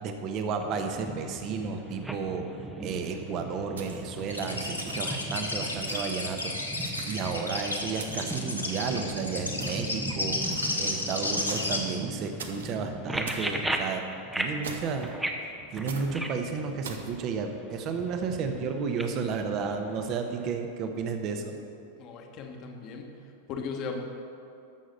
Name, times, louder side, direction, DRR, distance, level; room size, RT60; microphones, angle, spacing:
voice 1, 0.0-6.5 7.0-10.4 10.8-14.0 14.4-15.1 15.7-21.5, right 5 dB, 35° right, 6 dB, 1.2 m, -32 dB
sound 1, 0.6-20.5, right 1 dB, 5° right, 0.9 m, -38 dB
sound 2, 3.8-4.2 4.8-5.2 5.9-6.2 6.8-7.4 8.0-8.4 9.6-10.0 10.5-10.9 11.5-11.8 12.4-12.8 13.3-13.5 14.6-15.1 15.9-16.1 16.8-17.1, right 5 dB, 65° right, 1.0 m, -42 dB
sound 3, 4.3-11.8, left 2 dB, 85° left, 1.3 m, -32 dB
voice 2, 22.0-23.2 23.5-24.0, left 5 dB, 40° left, 3 dB, 1.4 m, -37 dB
13.5 x 6.4 x 6.7 m, 2.6 s
figure-of-eight pair, 90°, 0 cm